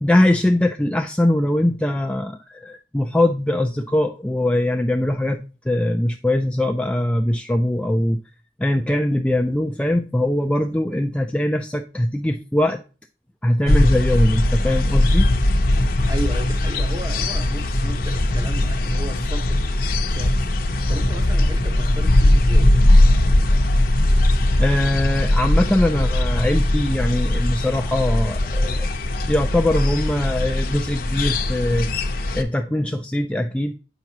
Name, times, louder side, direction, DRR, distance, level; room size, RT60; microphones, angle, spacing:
voice 1, 0.0-8.2 8.6-12.8 13.4-15.3 24.6-28.9 29.3-31.9 32.3-33.7, left 1 dB, 5° left, 0.3 m, -21 dB
sound 1, 13.7-32.4, left 1 dB, 50° left, 0.7 m, -19 dB
voice 2, 16.1-19.6 20.1-20.5 20.9-22.7, right 1 dB, 20° right, 0.8 m, -33 dB
8.8 x 5.9 x 2.8 m
head